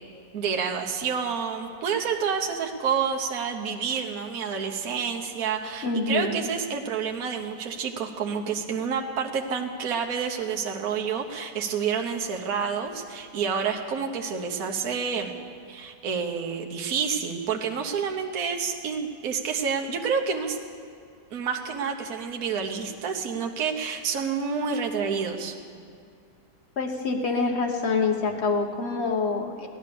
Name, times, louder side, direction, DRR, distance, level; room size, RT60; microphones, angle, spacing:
voice 1, 0.3-15.3 15.7-20.6 21.3-25.5, right 6 dB, 65° right, 3 dB, 1.3 m, -29 dB
voice 2, 5.8-6.4 26.8-29.7, left 4 dB, 40° left, 2 dB, 1.5 m, -26 dB
16.5 x 11.5 x 6.8 m, 2.3 s
omnidirectional pair, 1.8 m